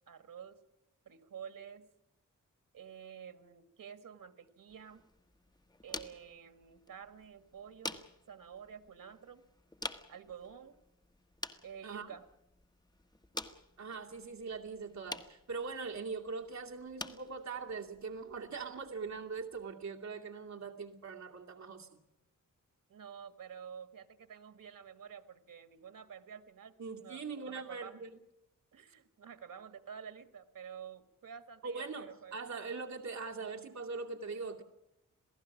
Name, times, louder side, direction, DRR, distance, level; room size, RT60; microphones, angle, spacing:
voice 1, 0.1-0.6 1.0-1.9 2.7-5.0 5.8-9.4 10.1-10.8 11.6-12.2 22.9-26.7 27.0-28.0 28.7-32.4, right 7 dB, 85° right, 11 dB, 1.6 m, -50 dB
sound 1, 4.7-19.7, left 2 dB, 15° left, 1.5 m, -49 dB
voice 2, 13.8-22.0 26.8-28.2 31.6-34.6, right 4 dB, 60° right, 1 dB, 2.5 m, -42 dB
27.5 x 17.5 x 7.3 m, 0.89 s
wide cardioid pair, 155°, 32 cm